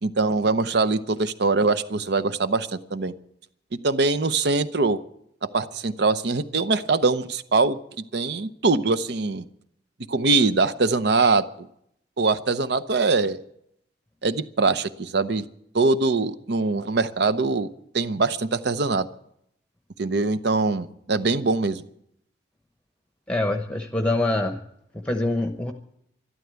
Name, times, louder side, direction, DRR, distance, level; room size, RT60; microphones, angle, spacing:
voice 1, 0.0-3.1 3.8-5.0 5.4-7.8 8.1-9.4 10.1-11.7 12.2-13.4 14.2-15.5 15.7-17.7 17.9-19.1 20.0-21.8, right 3 dB, 65° right, 13 dB, 0.8 m, -23 dB
voice 2, 23.3-24.6 24.9-25.7, left 2 dB, 5° left, 5 dB, 0.9 m, -25 dB
13.0 x 12.5 x 8.1 m, 0.74 s
head